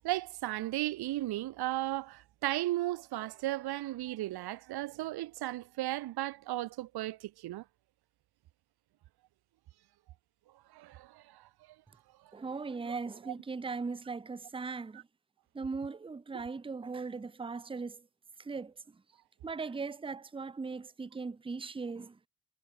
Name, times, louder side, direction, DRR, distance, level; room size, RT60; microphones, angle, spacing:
voice 1, 0.0-7.6 10.7-11.5 12.8-13.0 16.3-16.4, right 16 dB, 60° right, 0.8 m, -35 dB
voice 2, 12.3-15.0 15.5-18.0 18.4-18.7 19.4-22.2, right 4 dB, 10° right, 0.7 m, -39 dB
supercardioid pair, 60°, 44 cm